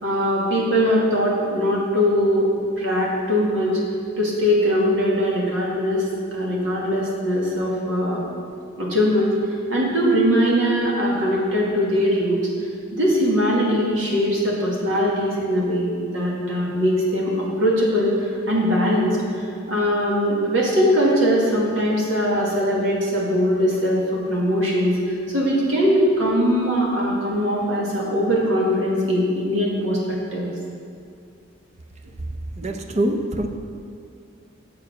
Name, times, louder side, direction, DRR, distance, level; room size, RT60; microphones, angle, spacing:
voice 1, 0.0-2.5 2.8-3.8 4.2-6.0 6.3-8.2 8.8-9.3 9.7-12.4 12.9-30.5, equal, 80° right, -4 dB, 2.2 m, -21 dB
voice 2, 32.6-33.5, right 1 dB, 35° right, 5 dB, 0.6 m, -24 dB
7.6 x 6.9 x 6.1 m, 2.4 s
head